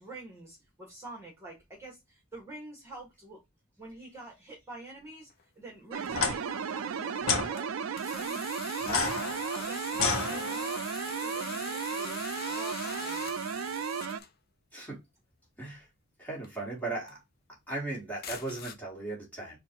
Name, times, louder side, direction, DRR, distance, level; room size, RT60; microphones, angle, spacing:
voice 1, 0.0-3.4 3.8-5.3 5.6-8.4 8.9-9.2 9.5-12.2 12.5-13.4, right 2 dB, 15° right, 1.7 m, -47 dB
sound 1, 5.3-5.4 6.1-6.2 7.2-7.7 8.0-14.3 16.4-16.6 17.1-17.2 18.2-18.7, left 7 dB, 50° left, 0.6 m, -43 dB
sound 2, 5.9-14.2, right 6 dB, 80° right, 0.4 m, -34 dB
sound 3, 6.1-6.3 7.2-7.5 8.8-10.8, left 5 dB, 90° left, 0.9 m, -30 dB
voice 2, 16.2-17.2 17.7-19.6, right 2 dB, 10° left, 2.1 m, -37 dB
4.4 x 2.6 x 4.5 m
head